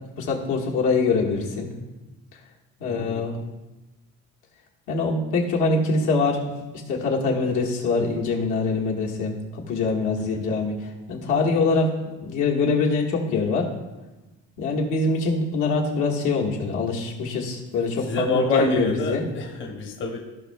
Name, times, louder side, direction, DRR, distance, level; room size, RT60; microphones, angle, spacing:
voice 1, 0.2-1.7 2.8-3.4 4.9-6.5 6.9-11.9 12.2-13.7 14.6-19.2, left 3 dB, 85° left, -2 dB, 1.5 m, -24 dB
voice 2, 2.8-3.3 10.2-10.5 18.1-20.2, left 3 dB, 40° left, 1 dB, 0.8 m, -27 dB
15.5 x 5.5 x 2.2 m, 1.1 s
cardioid pair, 170°, 30 cm